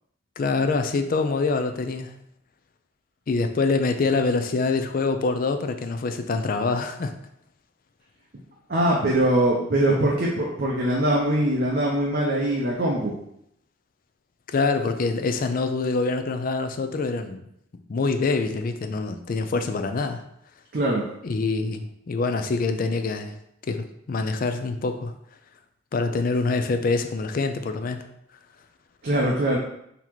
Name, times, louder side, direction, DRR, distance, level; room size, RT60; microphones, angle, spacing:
voice 1, 0.4-2.1 3.3-7.1 14.5-17.4 17.9-20.2 21.2-23.4 23.7-25.1 25.9-28.0, left 3 dB, 45° left, 8 dB, 0.4 m, -25 dB
voice 2, 8.7-13.1 20.7-21.0 29.0-29.6, right 1 dB, 50° right, -2 dB, 0.6 m, -22 dB
4.0 x 2.8 x 4.5 m, 0.75 s
head